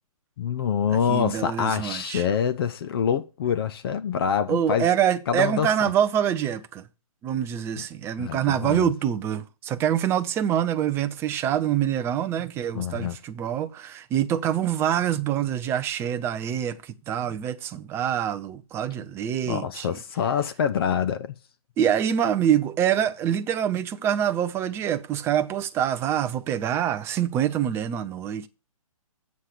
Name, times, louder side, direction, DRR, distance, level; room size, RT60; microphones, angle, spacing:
voice 1, 0.4-4.9 5.3-5.7 8.2-8.9 12.7-13.2 19.5-21.3, left 7 dB, 40° left, 0.7 m, -26 dB
voice 2, 1.1-2.2 4.5-6.9 7.2-19.9 21.8-28.5, right 10 dB, 15° right, 0.5 m, -25 dB
8.3 x 7.4 x 6.6 m
figure-of-eight pair, 135°, 18 cm